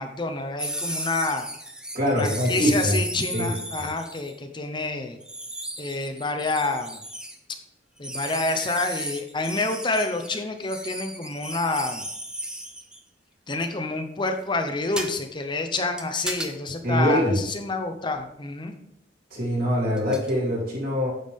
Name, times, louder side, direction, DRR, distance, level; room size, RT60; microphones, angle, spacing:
voice 1, 0.0-1.5 2.1-5.2 5.8-7.0 8.0-12.1 13.5-18.7, left 3 dB, 25° left, 6 dB, 0.7 m, -28 dB
sound 1, 0.6-4.3 5.2-7.4 8.0-13.0 15.0-15.1 16.0-16.5 18.1-18.2 20.0-20.3, right 1 dB, 5° right, 0.8 m, -35 dB
voice 2, 1.9-3.0 3.3-3.5 3.8-3.9 16.8-17.4 19.3-21.1, equal, 55° right, -3 dB, 3.0 m, -23 dB
9.3 x 7.1 x 3.6 m, 0.77 s
head